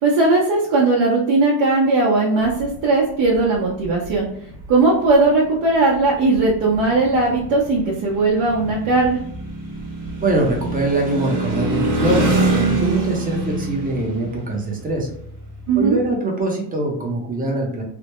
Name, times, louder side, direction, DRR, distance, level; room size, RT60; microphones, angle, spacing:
voice 1, 0.0-4.3 4.7-9.2 15.7-16.0, right 3 dB, 65° right, -4 dB, 0.8 m, -18 dB
sound 1, 2.4-2.8 3.2-4.2 4.5-4.7 5.1-5.2 5.9-6.0 6.2-16.1, right 2 dB, 40° right, 1.0 m, -25 dB
voice 2, 10.2-15.1 15.8-17.8, right 2 dB, 20° right, 0 dB, 0.6 m, -23 dB
3.3 x 2.0 x 3.0 m, 0.67 s
cardioid pair, 140°, 47 cm